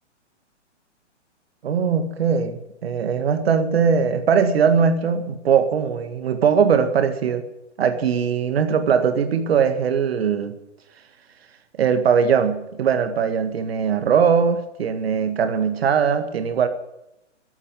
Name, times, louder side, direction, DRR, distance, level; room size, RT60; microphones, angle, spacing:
voice 1, 1.6-7.5 7.8-10.6 11.8-16.7, right 6 dB, 55° right, 8 dB, 1.8 m, -20 dB
13.0 x 8.5 x 8.3 m, 0.86 s
figure-of-eight pair, 125°, 37 cm